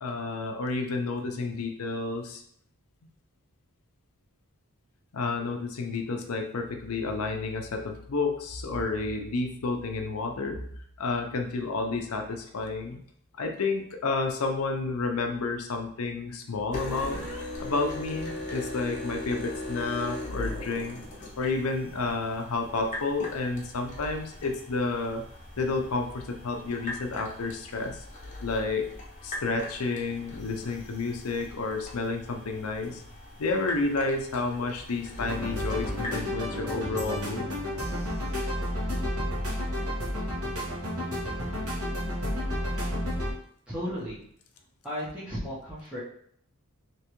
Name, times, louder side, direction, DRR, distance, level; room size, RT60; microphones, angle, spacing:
voice 1, 0.0-2.4 5.1-10.6 11.0-13.0 13.4-17.2 17.6-21.0 21.4-25.2 25.6-28.0 28.4-28.9 29.2-33.0 33.4-37.5, left 3 dB, 75° left, 4 dB, 0.6 m, -30 dB
sound 1, 16.7-36.3, left 1 dB, 35° left, 0.8 m, -40 dB
sound 2, 35.2-43.3, equal, 70° right, 1.3 m, -31 dB
voice 2, 43.7-44.2 44.8-46.0, equal, 5° right, -11 dB, 0.8 m, -34 dB
3.3 x 3.0 x 3.0 m, 0.64 s
head